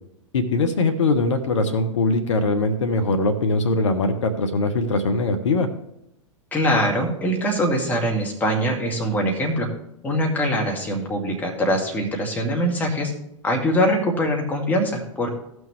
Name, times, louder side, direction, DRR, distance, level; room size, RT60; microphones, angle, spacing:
voice 1, 0.3-5.7, left 2 dB, 65° left, 7 dB, 0.9 m, -21 dB
voice 2, 6.5-9.7 10.0-13.1 13.4-15.3, equal, 10° left, -1 dB, 1.9 m, -23 dB
14.5 x 6.3 x 3.2 m, 0.80 s
figure-of-eight pair, 100°, 17 cm